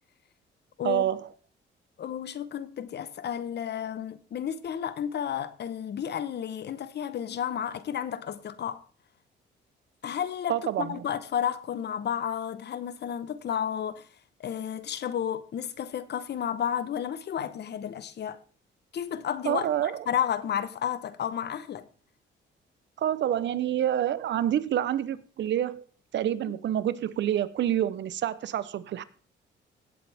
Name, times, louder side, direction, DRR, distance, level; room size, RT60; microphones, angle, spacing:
voice 1, 0.8-1.3 10.5-11.0 19.4-20.0 23.0-25.8 26.1-29.0, right 11 dB, 65° right, 0.8 m, -27 dB
voice 2, 2.0-8.8 10.0-14.1 14.4-18.4 18.9-21.9, left 9 dB, 60° left, 1.0 m, -32 dB
17.5 x 7.7 x 3.5 m
cardioid pair, 90°, 20 cm